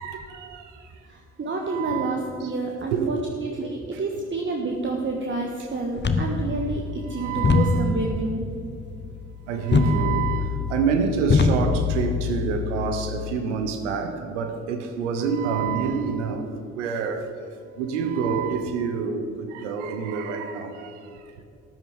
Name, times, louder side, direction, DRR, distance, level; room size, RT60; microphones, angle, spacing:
voice 1, 0.0-0.9 1.6-2.5 2.9-3.1 3.6-4.0 7.1-7.8 9.5-17.3 17.8-21.2, right 6 dB, 85° right, 0.9 m, -27 dB
voice 2, 1.1-8.5 14.2-14.3 17.1-17.3, right 3 dB, 35° right, 1.4 m, -29 dB
sound 1, 6.0-13.4, left 4 dB, 30° left, 1.1 m, -25 dB
13.5 x 9.2 x 4.8 m
hypercardioid pair, 45°, 35 cm